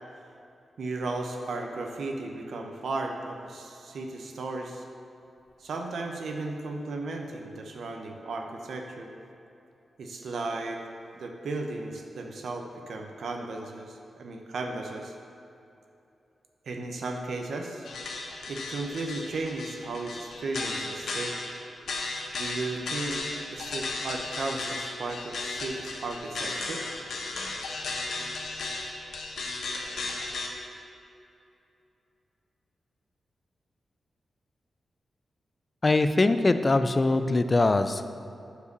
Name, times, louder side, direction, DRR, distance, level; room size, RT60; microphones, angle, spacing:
voice 1, 0.8-4.8 5.6-9.1 10.0-10.8 11.1-15.1 16.7-17.9 18.5-21.4 22.3-26.8, right 3 dB, 70° right, 2 dB, 0.8 m, -35 dB
sound 1, 17.9-30.5, left 3 dB, 75° left, 1.2 m, -35 dB
voice 2, 35.8-38.1, left 2 dB, 25° left, 10 dB, 0.4 m, -22 dB
9.7 x 4.8 x 6.7 m, 2.8 s
wide cardioid pair, 170°, 0 cm